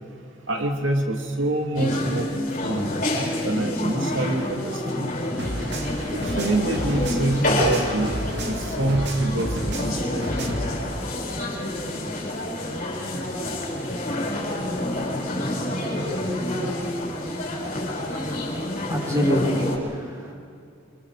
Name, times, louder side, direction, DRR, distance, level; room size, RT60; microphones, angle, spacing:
voice 1, 0.5-2.9 3.4-5.1 6.1-8.2 8.4-10.2, right 1 dB, 90° right, 2 dB, 2.4 m, -26 dB
sound 1, 1.7-19.8, left 1 dB, 45° left, 6.3 m, -28 dB
sound 2, 5.4-10.7, right 1 dB, 60° right, 2.3 m, -31 dB
voice 2, 18.8-20.3, left 1 dB, 20° right, -2 dB, 4.9 m, -25 dB
29.5 x 26.0 x 4.8 m, 2.4 s
head